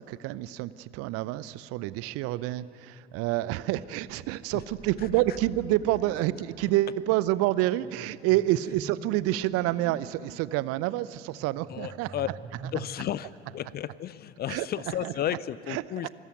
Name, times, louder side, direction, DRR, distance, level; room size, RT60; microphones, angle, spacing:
voice 1, 0.0-12.1 14.5-14.7 15.0-15.1 15.7-16.1, right 15 dB, 45° right, 18 dB, 0.6 m, -28 dB
sound 1, 4.5-12.8, right 4 dB, 30° right, 4.9 m, -47 dB
voice 2, 11.7-12.3 12.7-16.1, left 11 dB, 30° left, 18 dB, 0.5 m, -33 dB
25.5 x 14.0 x 9.4 m, 2.5 s
figure-of-eight pair, 70°, 33 cm